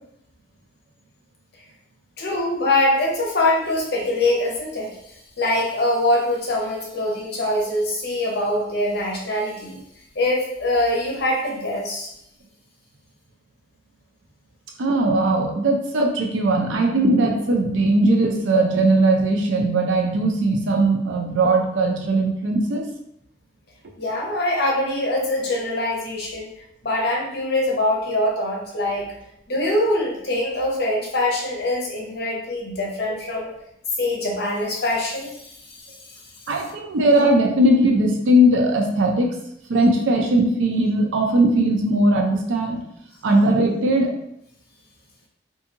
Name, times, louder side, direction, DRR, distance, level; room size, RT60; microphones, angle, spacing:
voice 1, 2.2-4.9 5.4-9.8 10.2-12.1 23.9-26.5 26.8-29.1 29.5-33.5 34.0-35.8, left 1 dB, 55° left, -2 dB, 0.7 m, -23 dB
voice 2, 14.8-22.9 36.5-39.4 39.7-42.8 43.2-44.1, right 1 dB, 80° right, 2 dB, 0.5 m, -19 dB
2.7 x 2.6 x 2.5 m, 0.75 s
head